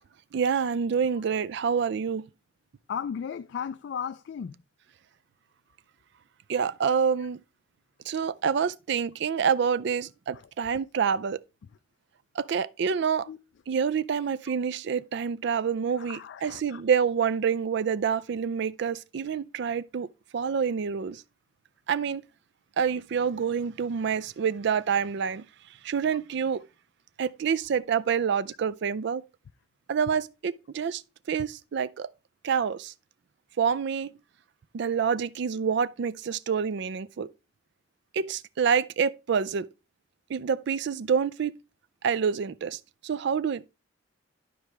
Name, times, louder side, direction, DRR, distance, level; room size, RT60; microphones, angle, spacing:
voice 1, 0.3-2.2 6.5-7.4 8.1-11.4 12.4-13.3 13.7-20.1 20.3-21.2 21.9-22.2 22.8-25.4 25.8-26.6 27.2-29.2 29.9-31.0 31.3-32.1 32.4-32.9 33.6-34.1 34.7-37.3 38.1-39.7 40.3-41.5 42.0-43.7, right 6 dB, 65° right, 0.4 m, -27 dB
voice 2, 2.9-4.5 13.3-13.4 14.5-14.6 16.0-16.8, left 7 dB, 65° left, 0.3 m, -35 dB
11.5 x 4.7 x 3.2 m
head